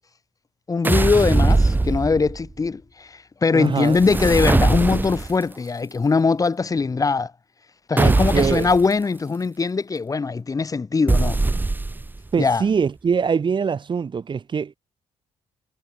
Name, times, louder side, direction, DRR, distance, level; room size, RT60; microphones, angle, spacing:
voice 1, 0.7-7.3 7.9-11.4 12.4-12.6, left 4 dB, 30° left, 3.4 m, -21 dB
sound 1, 0.8-2.5 3.9-5.4 8.0-8.8 11.1-12.2, right 2 dB, 15° right, 1.2 m, -20 dB
voice 2, 3.5-4.0 8.0-8.7 12.3-14.8, right 6 dB, 40° right, 5.6 m, -23 dB
cardioid pair, 90°, 12 cm